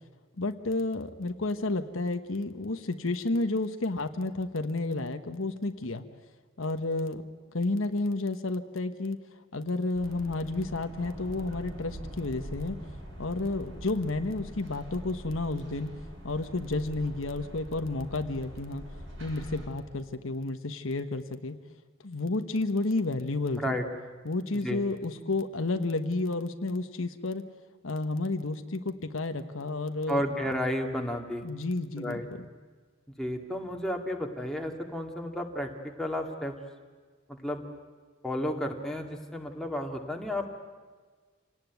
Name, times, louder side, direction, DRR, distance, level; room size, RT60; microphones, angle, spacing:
voice 1, 0.4-6.0 6.6-7.2 7.5-9.2 9.5-12.8 13.2-15.9 16.2-18.8 19.2-21.6 22.0-23.8 24.2-27.5 27.8-30.2 31.4-32.2, left 2 dB, 75° left, 8 dB, 1.3 m, -31 dB
sound 1, 9.9-19.7, equal, 70° right, 7.8 m, -44 dB
voice 2, 30.1-31.5 32.0-32.2 33.2-35.7 36.0-36.5 37.4-37.6 38.2-40.6, equal, 5° left, 1 dB, 2.2 m, -32 dB
27.5 x 18.5 x 9.4 m, 1.5 s
head